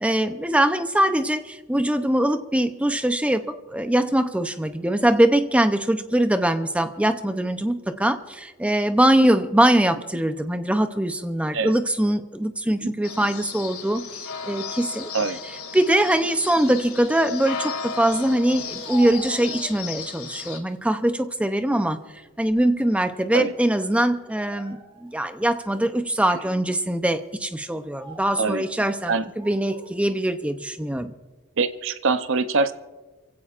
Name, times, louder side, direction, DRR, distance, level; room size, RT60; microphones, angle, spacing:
voice 1, 0.0-15.1 15.7-22.0 22.4-31.1, right 1 dB, 5° right, 9 dB, 0.6 m, -22 dB
sound 1, 13.0-20.6, left 5 dB, 70° left, 2.4 m, -35 dB
Speech, 18.5-20.2 20.7-21.3 21.7-22.9 23.2-23.4 24.2-25.2 25.7-25.9 26.7-26.9 27.7-28.4 29.2-29.9, right 2 dB, 25° right, 2.7 m, -43 dB
voice 2, 31.6-32.7, right 4 dB, 60° right, 10 dB, 0.7 m, -24 dB
28.5 x 16.0 x 2.5 m, 1.2 s
head